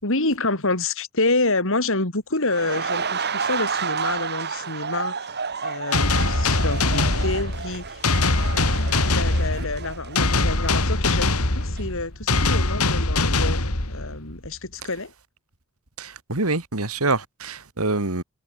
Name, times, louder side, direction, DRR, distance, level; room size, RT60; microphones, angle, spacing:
voice 1, 0.0-5.3 5.6-8.0 9.1-15.1, left 2 dB, 60° left, 4.4 m, -27 dB
sound 1, 2.4-11.3 11.6-11.8, right 5 dB, 50° right, 4.2 m, -31 dB
sound 2, 5.9-14.4, left 2 dB, 75° left, 3.5 m, -22 dB
voice 2, 16.0-18.2, right 2 dB, 75° right, 3.0 m, -25 dB
head